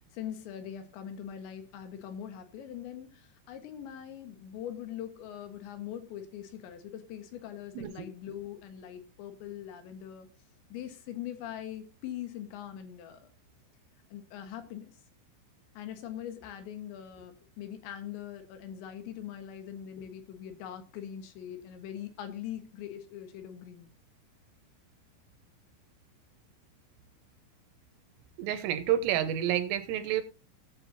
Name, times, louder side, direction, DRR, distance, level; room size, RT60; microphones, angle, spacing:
voice 1, 0.1-10.3 10.7-13.3 14.1-15.0 15.8-23.9, left 10 dB, 70° left, 3.5 m, -42 dB
voice 2, 28.4-30.2, right 11 dB, 80° right, 3.6 m, -29 dB
18.0 x 7.7 x 2.8 m
omnidirectional pair, 5.8 m